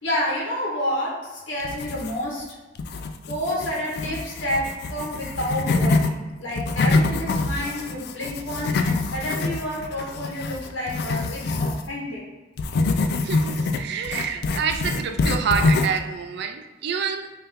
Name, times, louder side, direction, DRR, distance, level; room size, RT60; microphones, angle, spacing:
voice 1, 0.0-2.5 3.2-12.2, equal, 85° left, 1.3 m, -29 dB
sound 1, 1.6-2.4 2.8-6.1 6.5-11.9 12.6-16.0, left 3 dB, 55° left, 0.3 m, -25 dB
voice 2, 13.2-17.4, right 6 dB, 60° right, 0.3 m, -27 dB
3.7 x 2.7 x 3.4 m
head